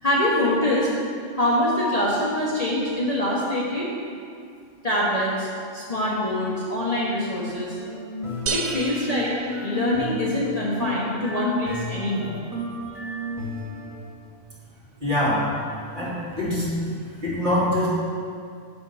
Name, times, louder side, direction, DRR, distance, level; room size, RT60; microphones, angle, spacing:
voice 1, 0.0-0.9 1.4-3.9 4.8-5.5 5.7-7.8 8.5-9.3 9.6-12.4, left 1 dB, 35° left, -6 dB, 1.0 m, -24 dB
sound 1, 7.5-14.0, left 2 dB, ahead, 1.4 m, -33 dB
sound 2, 8.5-10.3, right 5 dB, 65° right, 0.4 m, -32 dB
voice 2, 15.0-17.9, left 1 dB, 40° right, -9 dB, 2.5 m, -25 dB
7.2 x 5.4 x 5.6 m, 2.3 s
omnidirectional pair, 1.3 m